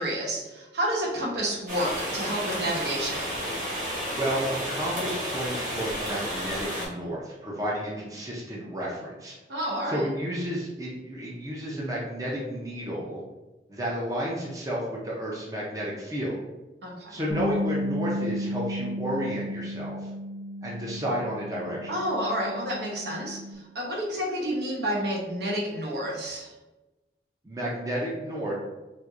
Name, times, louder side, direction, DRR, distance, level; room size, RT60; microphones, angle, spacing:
voice 1, 0.0-3.3 9.5-10.0 16.8-17.2 21.9-26.5, equal, 75° right, -2 dB, 0.9 m, -30 dB
sound 1, 1.7-6.9, equal, 50° right, 1.2 m, -32 dB
voice 2, 4.1-9.3 9.9-13.2 13.7-16.4 17.1-20.1 20.6-21.9 27.4-28.5, equal, 20° right, -4 dB, 0.5 m, -31 dB
Bass guitar, 17.3-23.6, left 1 dB, 50° left, 0.5 m, -34 dB
4.4 x 2.6 x 2.4 m, 1.1 s
head